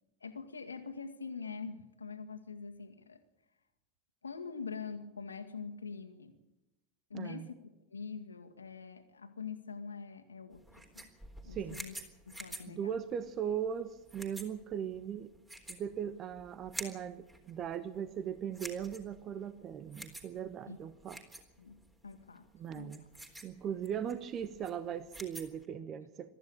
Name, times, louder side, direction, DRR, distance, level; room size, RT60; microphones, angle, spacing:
voice 1, 0.2-3.2 4.2-6.4 7.1-7.5 7.9-11.1 11.4-11.9 12.3-13.0 20.7-20.8 21.6-22.5 22.7-22.9, left 5 dB, 75° left, 5 dB, 2.1 m, -44 dB
voice 2, 7.1-7.5 11.5-11.8 12.7-15.3 15.7-21.2 22.6-23.0 23.4-26.3, right 8 dB, 35° right, 13 dB, 1.2 m, -39 dB
sound 1, 10.5-25.7, right 1 dB, 10° right, 3.8 m, -50 dB
22.5 x 14.0 x 8.8 m, 0.97 s
figure-of-eight pair, 85°, 0 cm